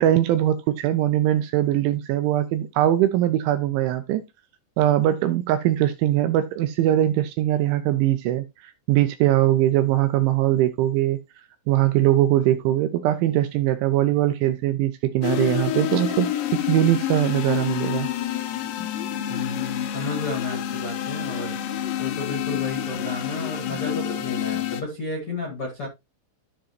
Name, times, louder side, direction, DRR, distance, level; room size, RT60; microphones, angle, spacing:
voice 1, 0.0-4.2 4.8-11.2 11.7-18.1, right 13 dB, 80° right, 2.8 m, -21 dB
sound 1, 15.2-24.8, left 11 dB, 75° left, 3.1 m, -28 dB
voice 2, 19.3-25.9, left 3 dB, 45° left, 1.9 m, -32 dB
13.5 x 4.7 x 3.0 m
omnidirectional pair, 5.9 m